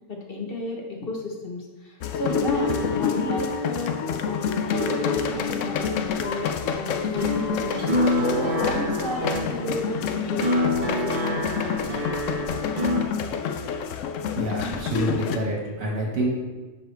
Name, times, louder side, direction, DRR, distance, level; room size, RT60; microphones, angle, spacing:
voice 1, 0.1-11.8, left 2 dB, 45° left, -1 dB, 1.3 m, -33 dB
sound 1, 2.0-15.4, left 7 dB, 70° left, 0.9 m, -28 dB
sound 2, 2.2-13.0, left 1 dB, 40° right, 1.2 m, -29 dB
voice 2, 14.3-16.3, right 1 dB, 80° right, -2 dB, 2.0 m, -27 dB
10.0 x 5.6 x 3.4 m, 1.3 s
omnidirectional pair, 1.4 m